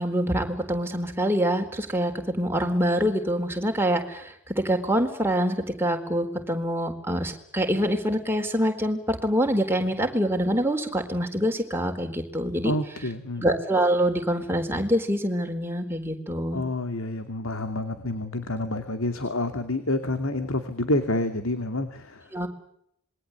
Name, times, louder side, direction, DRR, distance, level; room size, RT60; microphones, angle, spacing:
voice 1, 0.0-12.7 13.4-16.6 22.3-22.5, equal, 10° right, 3 dB, 4.2 m, -25 dB
voice 2, 12.6-13.5 16.5-22.3, left 1 dB, 75° left, 9 dB, 2.5 m, -28 dB
27.0 x 22.0 x 8.2 m, 0.71 s
head